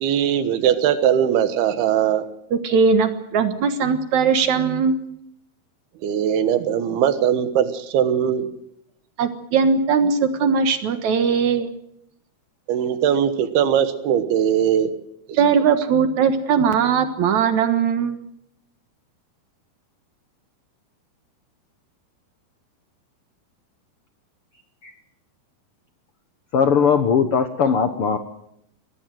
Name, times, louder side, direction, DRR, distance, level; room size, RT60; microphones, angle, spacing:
voice 1, 0.0-2.2 6.0-8.5 12.7-14.9 15.3-15.9, right 9 dB, 80° right, 11 dB, 3.3 m, -20 dB
voice 2, 2.5-5.0 9.2-11.7 15.4-18.2, right 6 dB, 60° right, 9 dB, 2.3 m, -19 dB
voice 3, 26.5-28.2, left 6 dB, 70° left, 8 dB, 1.3 m, -19 dB
23.0 x 17.5 x 7.7 m, 0.76 s
omnidirectional pair, 4.5 m